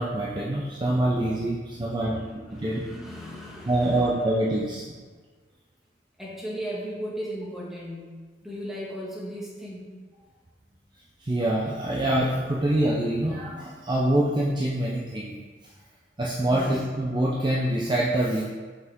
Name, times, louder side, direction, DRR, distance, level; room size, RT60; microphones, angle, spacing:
voice 1, 0.0-2.8 3.7-4.8 11.2-15.4 16.2-18.4, right 1 dB, 25° right, -5 dB, 0.6 m, -25 dB
voice 2, 1.7-4.2 6.2-8.1 8.4-10.0 16.5-16.8, equal, ahead, -6 dB, 1.4 m, -37 dB
5.8 x 5.4 x 3.6 m, 1.4 s
head